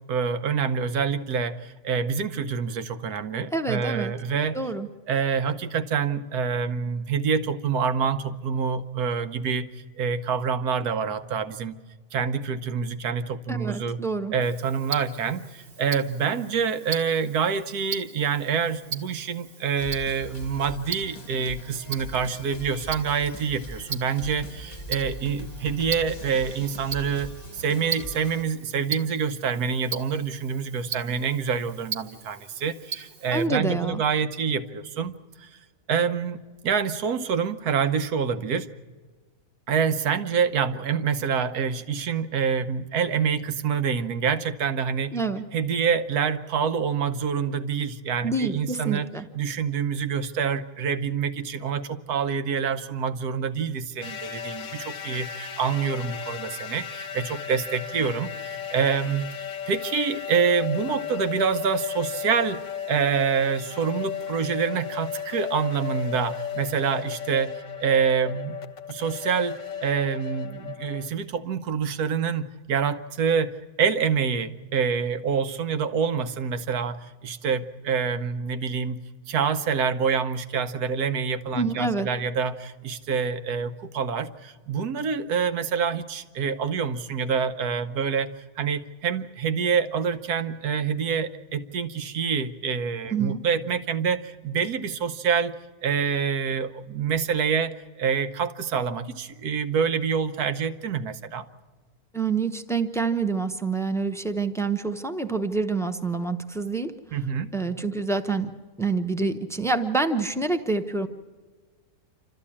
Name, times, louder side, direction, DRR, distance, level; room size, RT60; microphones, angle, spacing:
voice 1, 0.0-4.6 5.1-9.7 10.0-11.8 12.1-14.0 14.3-35.1 35.4-35.5 35.9-38.7 39.7-45.2 45.5-49.1 49.3-62.6 62.9-67.5 67.8-68.6 68.9-73.5 73.8-88.3 88.6-95.5 95.8-101.5 107.1-107.5, right 6 dB, 80° right, 10 dB, 1.4 m, -26 dB
voice 2, 3.5-4.1 4.5-4.9 13.5-14.3 33.3-34.0 45.1-45.5 48.2-49.3 81.5-82.1 93.1-93.4 102.1-107.0 107.5-108.5 108.8-111.1, right 3 dB, 5° left, 8 dB, 0.5 m, -27 dB
Tick-tock, 14.4-33.5, right 6 dB, 40° right, 1.2 m, -39 dB
sound 1, 19.8-28.4, equal, 30° left, 1.1 m, -41 dB
sound 2, 54.0-71.1, left 8 dB, 60° left, 1.1 m, -35 dB
27.5 x 13.5 x 8.6 m, 1.4 s
omnidirectional pair, 1.6 m